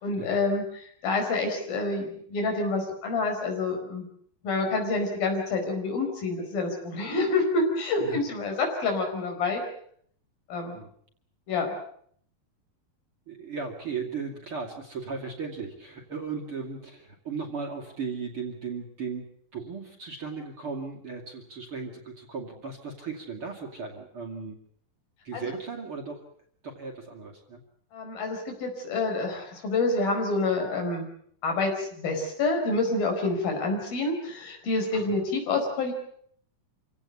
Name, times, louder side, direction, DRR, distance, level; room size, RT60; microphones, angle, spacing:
voice 1, 0.0-4.1 4.4-9.6 10.5-10.8 11.5-11.7 25.3-25.5 27.9-31.1 31.4-35.9, left 3 dB, 80° left, 3 dB, 6.6 m, -28 dB
voice 2, 13.3-24.6 25.2-26.2 26.6-27.6 34.9-35.1, right 5 dB, 40° right, 1 dB, 3.1 m, -36 dB
27.0 x 17.0 x 8.4 m, 0.63 s
omnidirectional pair, 4.1 m